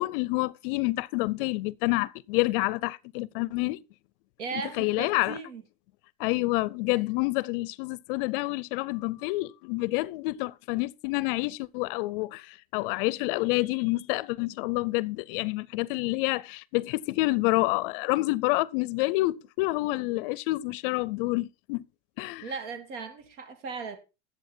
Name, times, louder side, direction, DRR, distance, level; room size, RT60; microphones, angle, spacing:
voice 1, 0.0-3.8 4.8-5.4 6.2-21.8 22.2-22.4, left 22 dB, 50° left, 0.5 m, -28 dB
voice 2, 4.4-5.6 22.4-24.0, right 4 dB, 80° right, 2.7 m, -37 dB
11.0 x 7.9 x 4.3 m
supercardioid pair, 150°, 35 cm